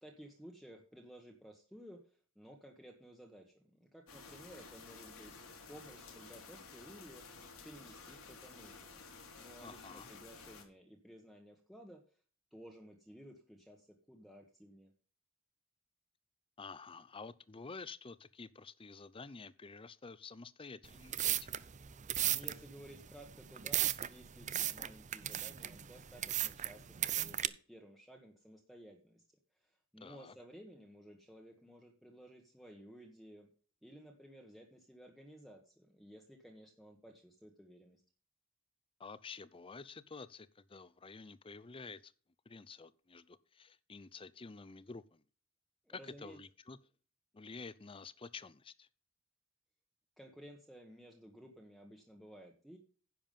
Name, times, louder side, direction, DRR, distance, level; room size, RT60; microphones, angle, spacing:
voice 1, 0.0-5.4 5.7-12.0 12.5-14.9 22.2-29.2 29.5-33.5 33.8-38.0 45.8-46.4 50.2-52.8, equal, ahead, 1.3 m, -56 dB
sound 1, 4.1-10.6, left 4 dB, 85° left, 3.3 m, -53 dB
voice 2, 9.6-10.1 16.6-21.6 30.0-30.3 39.0-42.1 42.5-45.2 46.0-46.8 47.3-48.9, left 4 dB, 25° left, 0.6 m, -50 dB
sound 2, 20.8-27.5, right 12 dB, 35° right, 0.6 m, -36 dB
10.5 x 7.1 x 5.4 m
head